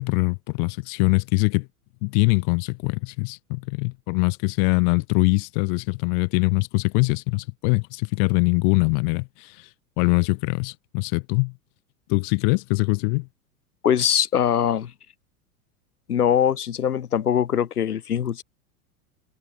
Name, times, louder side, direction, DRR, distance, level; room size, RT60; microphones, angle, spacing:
voice 1, 0.0-1.7 2.0-9.7 10.0-11.5 12.1-13.3, left 37 dB, 50° left, 1.3 m, -23 dB
voice 2, 13.8-14.9 16.1-18.4, left 9 dB, 85° left, 1.5 m, -22 dB
hypercardioid pair, 90°, 44 cm